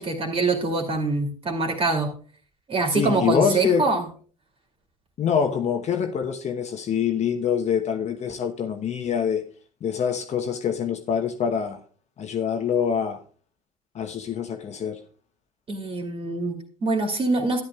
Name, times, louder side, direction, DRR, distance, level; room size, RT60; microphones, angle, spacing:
voice 1, 0.0-2.1 2.7-4.0 15.7-17.6, right 3 dB, 30° right, 2.7 m, -24 dB
voice 2, 2.9-3.9 5.2-9.4 9.8-11.8 12.2-13.2 13.9-15.0, left 7 dB, 40° left, 1.0 m, -25 dB
13.0 x 10.0 x 2.4 m
hypercardioid pair, 65°, 18 cm